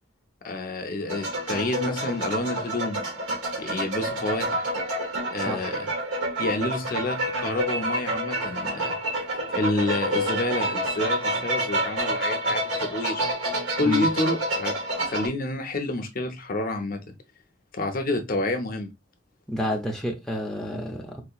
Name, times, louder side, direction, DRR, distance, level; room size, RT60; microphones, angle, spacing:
voice 1, 0.4-3.0 3.6-4.7 5.3-5.9 6.4-9.0 9.5-13.2 13.8-14.7 15.0-17.1 17.7-18.9, left 2 dB, 45° left, 0.6 m, -29 dB
sound 1, 1.1-15.3, right 1 dB, 80° right, 1.1 m, -28 dB
voice 2, 19.5-21.2, equal, 5° left, 0.6 m, -29 dB
4.2 x 2.8 x 2.3 m
head